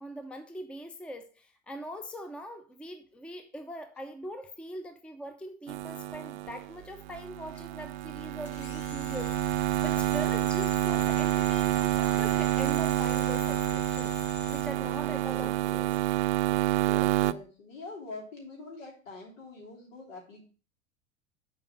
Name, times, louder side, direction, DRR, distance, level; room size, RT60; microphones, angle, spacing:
voice 1, 0.0-14.2 14.5-15.9, equal, 5° left, 7 dB, 0.7 m, -42 dB
sound 1, 5.7-17.3, right 14 dB, 60° right, 0.5 m, -28 dB
sound 2, 8.5-15.6, left 7 dB, 35° left, 0.9 m, -45 dB
voice 2, 14.7-15.9 16.7-20.4, left 3 dB, 70° left, -1 dB, 3.3 m, -45 dB
7.0 x 4.6 x 6.3 m, 0.37 s
figure-of-eight pair, 80°, 40 cm